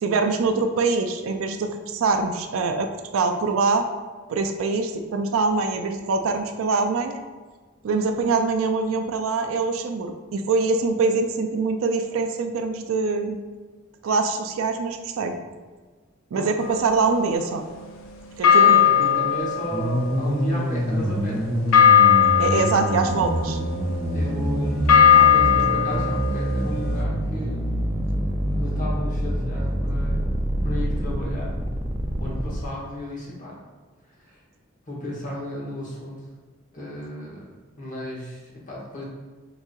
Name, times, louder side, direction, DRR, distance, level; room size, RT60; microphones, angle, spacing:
voice 1, 0.0-3.9 4.3-7.2 7.8-13.4 14.0-15.4 16.3-17.6 18.4-18.8 22.4-23.6, right 4 dB, 80° right, 6 dB, 0.4 m, -24 dB
sound 1, 16.6-17.9 18.4-27.0, left 8 dB, 75° left, 0.4 m, -20 dB
voice 2, 18.6-21.7 23.9-27.9 28.5-30.4 30.6-31.6 32.2-33.6 34.2-34.4 34.9-36.3 36.7-37.5 37.8-39.0, left 1 dB, 40° left, -4 dB, 1.0 m, -34 dB
sound 2, 19.7-32.6, equal, 10° right, 0.3 m, -26 dB
4.9 x 2.7 x 2.3 m, 1.3 s
head